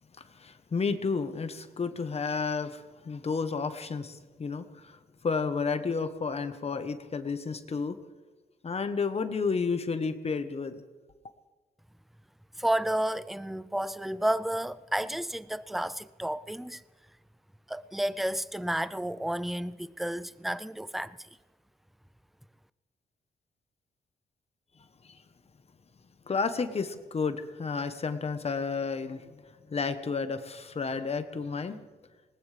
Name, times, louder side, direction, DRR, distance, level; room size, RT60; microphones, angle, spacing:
voice 1, 0.3-8.0 8.6-10.8 25.0-25.2 26.3-29.4 29.7-31.8, left 5 dB, 40° left, 1.1 m, -31 dB
voice 2, 12.6-16.8 17.7-21.2, right 1 dB, ahead, 0.4 m, -31 dB
20.0 x 19.5 x 3.4 m
cardioid pair, 90°, 17 cm